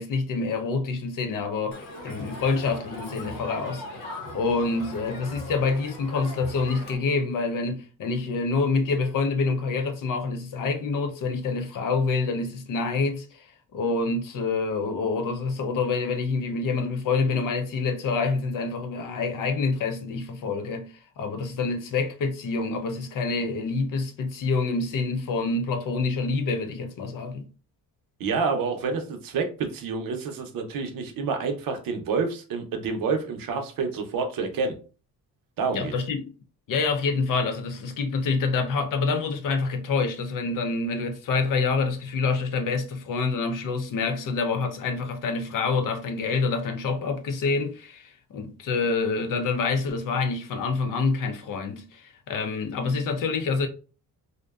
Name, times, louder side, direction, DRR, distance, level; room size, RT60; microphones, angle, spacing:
voice 1, 0.0-27.5 35.7-36.3 36.7-53.7, left 4 dB, 60° left, 0.5 m, -27 dB
Crowd, 1.7-7.0, left 2 dB, 85° left, 0.9 m, -39 dB
voice 2, 28.2-34.8 35.6-35.9, right 5 dB, 65° right, 0.6 m, -28 dB
2.6 x 2.1 x 2.2 m
cardioid pair, 125°, 37 cm